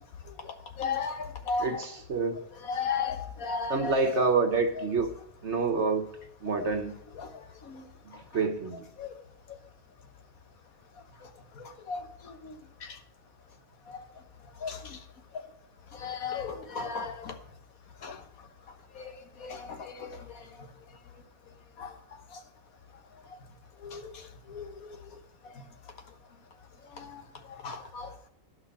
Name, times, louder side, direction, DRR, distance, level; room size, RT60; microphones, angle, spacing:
voice 1, 0.4-1.9 2.6-4.3 4.8-4.9 6.5-6.7 7.2-7.3 7.6-7.9 9.0-9.1 11.6-13.0 13.9-14.0 14.6-15.0 15.3-15.4 15.9-17.3 18.0-18.2 18.9-19.1 19.4-20.4 21.8-21.9 22.3-22.4 23.8-24.2 24.5-25.0 26.9-27.2 27.5-28.3, left 5 dB, 85° left, 1.7 m, -36 dB
voice 2, 1.6-2.4 3.7-5.1 5.4-6.1 6.4-7.0 8.1-8.9, right 4 dB, 55° right, 1.4 m, -27 dB
11.0 x 5.6 x 7.4 m
omnidirectional pair, 1.4 m